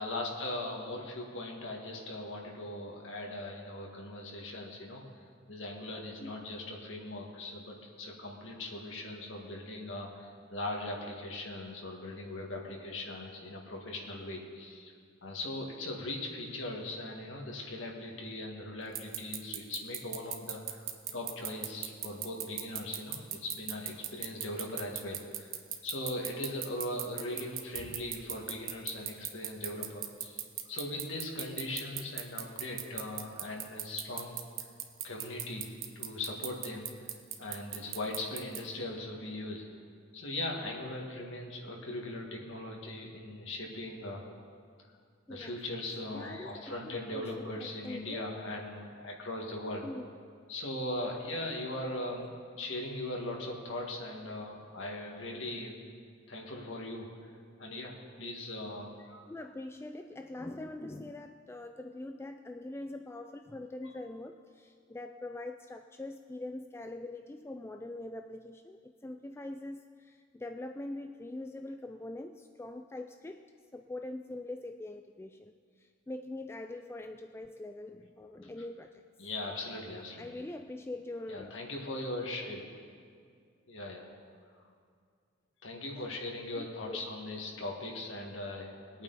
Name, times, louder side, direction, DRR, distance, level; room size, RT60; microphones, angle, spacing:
voice 1, 0.0-5.0 5.5-14.9 15.2-25.5 25.8-34.4 35.0-37.1 37.4-39.7 40.1-44.2 45.3-49.9 50.5-55.8 56.3-57.1 57.6-59.2 63.8-63.9 79.2-80.3 81.3-82.6 83.7-84.1 85.6-89.0, left 1 dB, 70° left, 0 dB, 2.0 m, -39 dB
sound 1, 19.0-38.6, right 12 dB, 85° right, 0.9 m, -36 dB
voice 2, 45.3-45.6 46.1-48.3 49.8-50.1 55.5-55.6 59.3-73.4 73.7-79.0 80.2-81.5 86.0-86.1 86.6-87.0, left 2 dB, 10° left, 6 dB, 0.3 m, -43 dB
21.5 x 8.7 x 4.1 m, 2.1 s
head